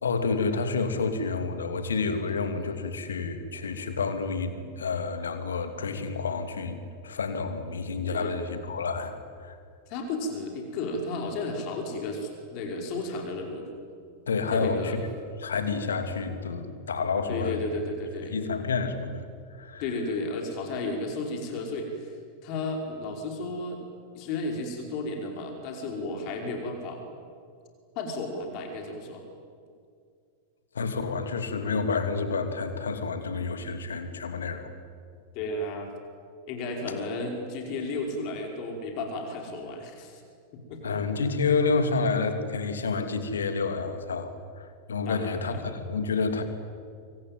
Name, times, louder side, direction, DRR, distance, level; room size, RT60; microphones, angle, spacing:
voice 1, 0.0-9.1 9.4-9.6 14.3-15.0 15.4-17.6 18.3-19.8 30.7-34.7 40.8-44.3 44.6-46.4, left 4 dB, 70° left, 8 dB, 2.8 m, -29 dB
voice 2, 9.9-13.7 14.5-15.0 17.3-18.4 19.8-22.2 22.4-23.8 24.1-27.0 28.0-29.2 35.3-35.9 36.5-40.2 40.5-41.0 45.1-45.7, left 2 dB, 45° left, 2 dB, 5.2 m, -33 dB
25.5 x 25.0 x 9.3 m, 2.2 s
figure-of-eight pair, 90°, 0 cm